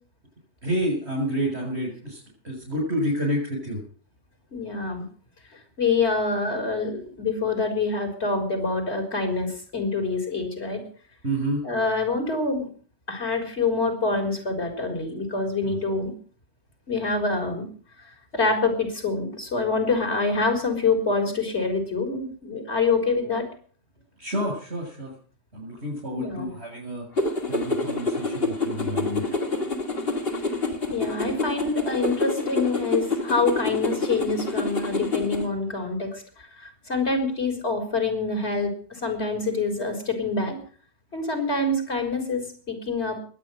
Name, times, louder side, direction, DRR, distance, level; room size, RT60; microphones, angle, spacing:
voice 1, 0.6-3.8 11.2-11.7 15.6-15.8 24.2-25.1 25.5-27.1 27.5-29.2, equal, 80° right, -3 dB, 7.1 m, -29 dB
voice 2, 4.5-5.0 5.8-10.8 11.6-12.7 13.1-16.1 16.9-17.7 18.3-23.5 26.1-26.5 30.9-36.2 36.6-40.6 41.1-43.2, left 3 dB, 85° left, 5 dB, 4.5 m, -26 dB
sound 1, 27.2-35.5, left 3 dB, 65° left, 2.5 m, -27 dB
21.0 x 9.0 x 6.3 m, 0.44 s
omnidirectional pair, 1.1 m